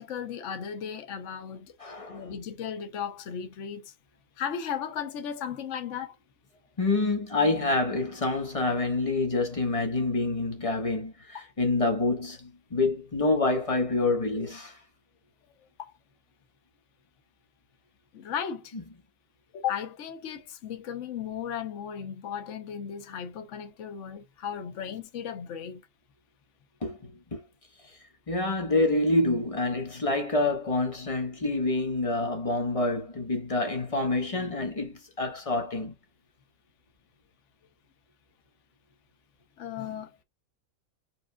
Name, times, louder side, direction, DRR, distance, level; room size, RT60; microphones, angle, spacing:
voice 1, 0.0-3.9 4.4-6.2 11.3-11.5 15.8-15.9 18.1-18.7 19.5-25.8 39.6-40.2, left 8 dB, 60° left, 1.2 m, -36 dB
voice 2, 1.8-2.3 6.8-14.8 26.8-27.0 27.3-27.4 28.3-35.9, left 2 dB, 25° left, 1.5 m, -27 dB
5.0 x 3.9 x 2.3 m
omnidirectional pair, 1.5 m